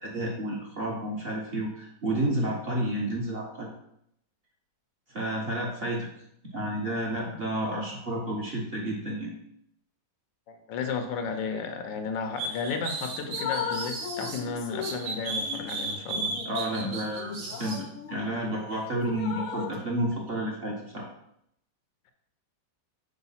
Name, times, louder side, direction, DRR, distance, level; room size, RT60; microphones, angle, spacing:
voice 1, 0.0-3.7 5.1-6.1 6.5-9.3 16.4-21.1, right 1 dB, 40° right, -2 dB, 1.2 m, -31 dB
voice 2, 10.5-16.3, left 5 dB, 85° left, 6 dB, 1.5 m, -33 dB
sound 1, 12.4-14.4 14.8-17.8, right 3 dB, 85° right, 1.6 m, -34 dB
Drip, 12.7-12.9 13.2-18.6 19.1-19.8, left 7 dB, 65° left, 0.8 m, -37 dB
4.8 x 4.0 x 5.6 m, 0.75 s
omnidirectional pair, 1.9 m